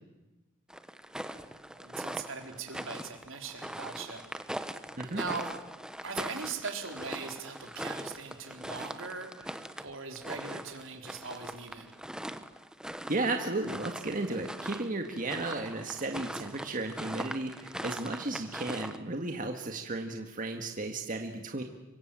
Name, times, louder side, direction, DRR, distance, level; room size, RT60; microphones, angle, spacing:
sound 1, 0.7-19.0, right 1 dB, 5° right, 1.0 m, -41 dB
voice 1, 1.5-4.4 5.1-5.5 6.0-11.9, right 5 dB, 80° right, 4 dB, 3.9 m, -40 dB
voice 2, 13.1-21.6, right 2 dB, 45° right, 4 dB, 1.8 m, -34 dB
26.5 x 24.0 x 7.6 m, 1.1 s
head